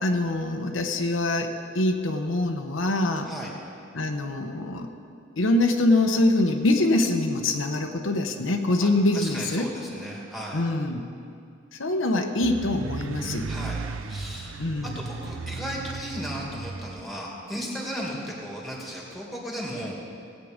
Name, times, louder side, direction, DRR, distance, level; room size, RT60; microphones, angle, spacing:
voice 1, 0.0-3.3 3.9-4.9 5.4-9.7 10.5-11.0 11.7-13.5 14.6-15.0, left 2 dB, 85° left, 4 dB, 0.9 m, -24 dB
voice 2, 8.8-10.6 13.5-13.8 14.1-14.5 14.9-19.9, equal, ahead, -3 dB, 2.3 m, -35 dB
sound 1, 12.4-17.0, right 4 dB, 85° right, 0.5 m, -35 dB
17.5 x 8.4 x 5.2 m, 2.4 s
head